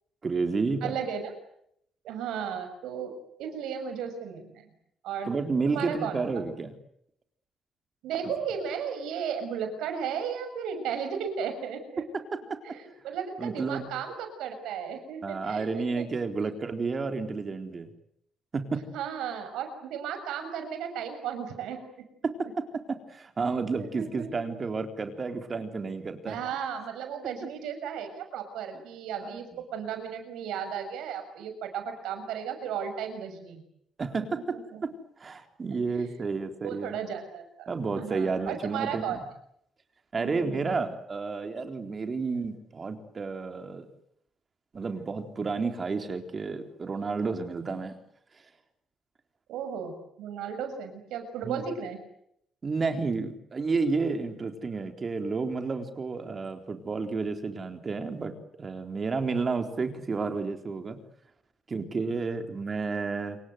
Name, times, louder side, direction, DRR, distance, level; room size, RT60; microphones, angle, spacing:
voice 1, 0.2-1.0 5.2-6.7 13.4-13.9 15.2-17.9 18.5-18.9 22.2-22.3 22.9-26.4 29.2-29.6 34.0-34.5 35.2-37.0 37.7-39.2 40.1-43.9 44.7-47.9 51.4-51.6 52.6-58.3 58.6-61.0 61.7-63.4, right 4 dB, 35° right, 6 dB, 3.9 m, -31 dB
voice 2, 0.8-1.3 2.0-3.1 3.4-4.5 5.0-5.3 5.6-6.3 8.0-12.0 12.6-16.1 16.4-16.5 18.9-21.8 23.8-24.3 26.3-33.6 34.3-34.8 35.9-36.1 36.6-37.7 38.0-39.2 40.2-40.8 49.5-49.9 50.2-52.0, right 7 dB, 90° right, 8 dB, 6.6 m, -35 dB
28.0 x 24.0 x 8.2 m, 0.72 s
cardioid pair, 90°, 0 cm